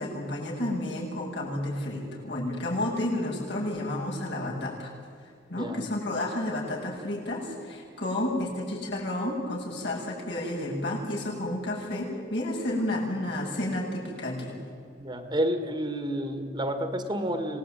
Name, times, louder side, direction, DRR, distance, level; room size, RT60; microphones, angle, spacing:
voice 1, 0.0-4.9 5.5-14.6, left 1 dB, 65° left, -3 dB, 8.0 m, -31 dB
voice 2, 15.0-17.6, equal, 25° right, 8 dB, 1.9 m, -30 dB
26.5 x 19.0 x 9.5 m, 2.4 s
head